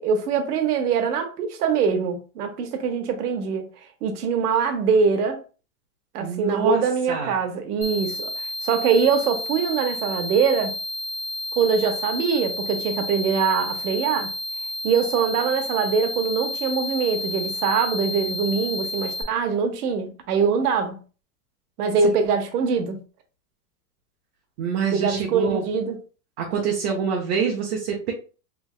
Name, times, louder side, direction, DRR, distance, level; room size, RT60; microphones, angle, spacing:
voice 1, 0.0-3.7 4.0-5.4 6.1-8.3 8.6-10.8 11.6-14.3 14.8-21.0 21.8-23.0 24.9-26.0, right 5 dB, 90° right, 1.1 m, -23 dB
voice 2, 6.2-6.8 7.1-7.3 24.6-25.7 26.4-28.1, right 6 dB, 45° right, 0.9 m, -26 dB
sound 1, 7.8-19.2, left 2 dB, 5° left, 0.7 m, -31 dB
3.4 x 3.4 x 2.4 m
supercardioid pair, 160°, 45 cm